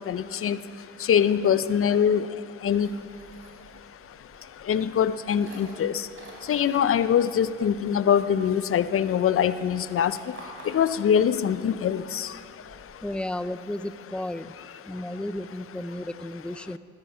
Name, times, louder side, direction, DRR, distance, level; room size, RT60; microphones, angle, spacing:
voice 1, 0.1-0.6 1.1-2.2 2.6-2.9 4.7-5.9 6.5-10.1 10.7-12.0, left 8 dB, 45° left, 14 dB, 0.6 m, -23 dB
sound 1, 2.6-13.2, right 1 dB, 40° right, 4.0 m, -51 dB
voice 2, 13.0-14.5 14.9-16.8, left 1 dB, 5° left, 14 dB, 0.4 m, -33 dB
15.0 x 13.5 x 5.6 m, 2.4 s
cardioid pair, 90°, 30 cm